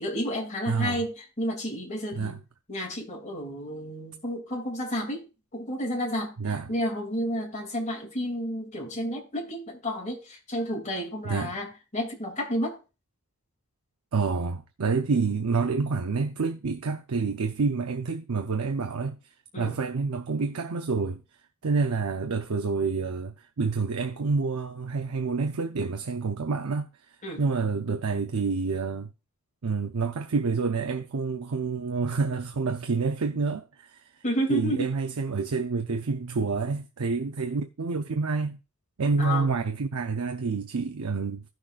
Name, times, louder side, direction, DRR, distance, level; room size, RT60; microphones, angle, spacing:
voice 1, 0.0-2.4 2.7-5.3 5.5-6.3 6.7-12.8 19.5-19.8 27.2-27.4 34.2-34.9 39.2-39.5, equal, 35° left, 2.7 m, -31 dB
voice 2, 0.7-1.0 2.2-2.4 6.4-6.7 11.2-11.6 14.1-19.2 19.6-21.2 21.6-26.9 27.4-29.1 29.6-34.0 34.5-38.6 39.0-41.4, right 4 dB, 90° right, 0.7 m, -28 dB
16.5 x 6.4 x 2.5 m
head